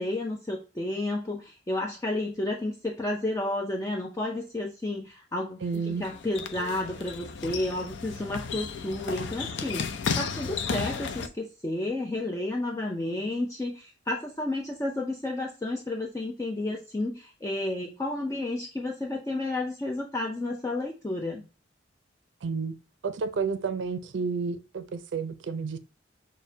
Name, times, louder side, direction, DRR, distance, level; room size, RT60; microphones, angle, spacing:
voice 1, 0.0-21.5, left 2 dB, 15° left, 0.4 m, -31 dB
sound 1, 5.6-11.3, left 5 dB, 75° left, 0.5 m, -34 dB
voice 2, 5.6-6.0 22.4-22.7 23.0-25.8, right 5 dB, 75° right, 0.4 m, -31 dB
6.3 x 2.1 x 2.6 m
head